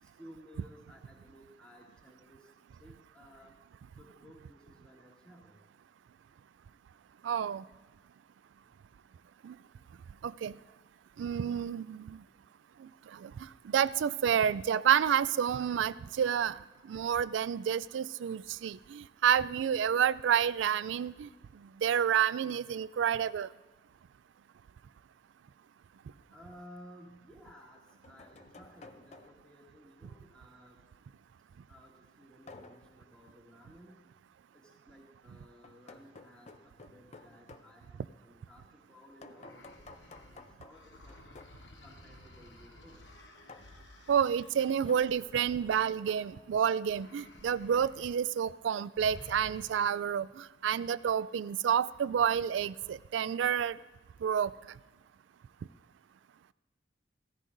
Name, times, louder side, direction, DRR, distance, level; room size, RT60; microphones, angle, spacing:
voice 1, 0.0-2.5 2.8-3.5 4.0-5.6 26.3-30.8 31.7-34.0 34.5-41.4 41.8-43.0 44.8-45.6, equal, 5° left, -4 dB, 2.2 m, -56 dB
voice 2, 7.2-7.6 9.4-9.5 10.2-10.5 11.2-12.2 13.2-13.3 13.7-16.6 16.9-21.3 21.8-23.5 44.1-53.8 54.2-54.5, right 8 dB, 85° right, 18 dB, 0.3 m, -29 dB
sound 1, 26.2-26.3 27.6-29.6 32.5-32.9 35.6-37.7 39.2-41.6 43.5-43.8 44.7-46.1, left 3 dB, 35° left, 0.5 m, -53 dB
sound 2, 39.3-46.5 46.9-48.2 48.4-48.6 48.9-50.1, left 2 dB, 80° left, 1.0 m, -54 dB
16.0 x 13.5 x 2.6 m, 1.2 s
head